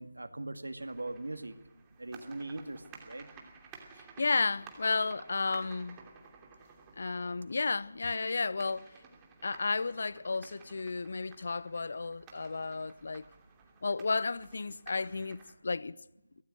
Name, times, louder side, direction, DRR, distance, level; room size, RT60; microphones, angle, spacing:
voice 1, 0.0-1.6 2.0-3.3, right 2 dB, 70° right, 2.1 m, -40 dB
sound 1, 0.8-15.5, right 5 dB, 15° right, 2.8 m, -55 dB
voice 2, 4.2-6.0 7.0-8.9 9.4-13.2 13.8-15.9, left 4 dB, 55° left, 0.7 m, -32 dB
24.5 x 17.5 x 6.4 m
figure-of-eight pair, 155°, 0 cm